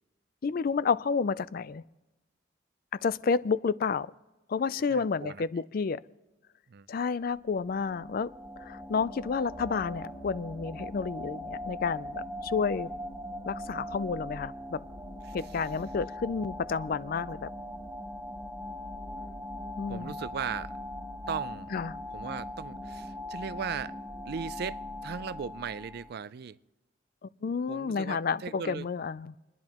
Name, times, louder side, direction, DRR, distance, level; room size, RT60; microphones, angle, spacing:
voice 1, 0.4-1.8 3.0-4.1 4.5-6.0 6.9-8.3 8.6-12.9 13.5-14.8 15.3-17.5 19.8-20.1 21.7-21.9 27.4-29.3, left 5 dB, 50° left, 0.4 m, -30 dB
voice 2, 4.9-5.4 6.7-6.9 15.2-15.6 19.9-20.8 21.3-21.7 22.1-24.0 24.3-26.6 27.7-28.9, right 6 dB, 55° right, 0.4 m, -38 dB
sound 1, 7.3-26.2, left 1 dB, 15° right, 1.9 m, -40 dB
29.5 x 10.5 x 3.0 m
head